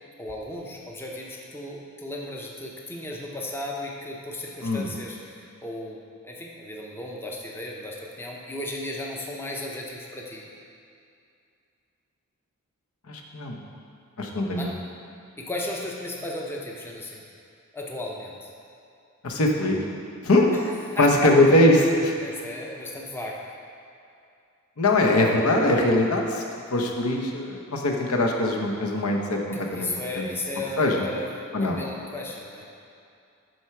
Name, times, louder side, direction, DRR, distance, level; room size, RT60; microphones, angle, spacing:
voice 1, 0.2-10.5 14.5-14.7 15.4-17.2 17.7-18.5 20.5-21.3 22.2-23.4 29.5-32.7, left 1 dB, 10° left, -2 dB, 0.6 m, -35 dB
voice 2, 13.1-13.6 14.2-14.7 19.2-19.8 20.2-20.5 21.0-22.1 24.8-26.4 26.7-29.4 29.7-30.3 30.8-31.1 31.5-31.8, left 1 dB, 75° left, 1 dB, 0.9 m, -21 dB
7.9 x 4.4 x 5.8 m, 2.5 s
head